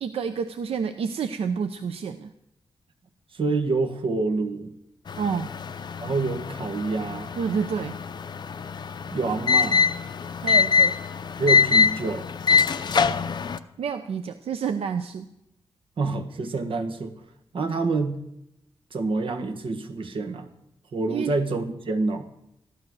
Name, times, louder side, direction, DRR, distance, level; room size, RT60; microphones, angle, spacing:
voice 1, 0.0-2.3 5.2-5.5 7.4-7.9 10.4-11.0 12.8-13.1 13.8-15.3 21.1-21.3, right 6 dB, 85° right, 9 dB, 0.7 m, -29 dB
voice 2, 3.3-4.7 6.0-7.3 9.1-9.9 11.4-12.3 16.0-17.1 17.5-18.2 18.9-20.5 20.9-22.3, right 3 dB, 65° right, 6 dB, 1.6 m, -27 dB
sound 1, 5.1-13.6, left 5 dB, 50° left, 0.6 m, -24 dB
14.5 x 12.0 x 6.3 m, 0.82 s
wide cardioid pair, 125°, 10 cm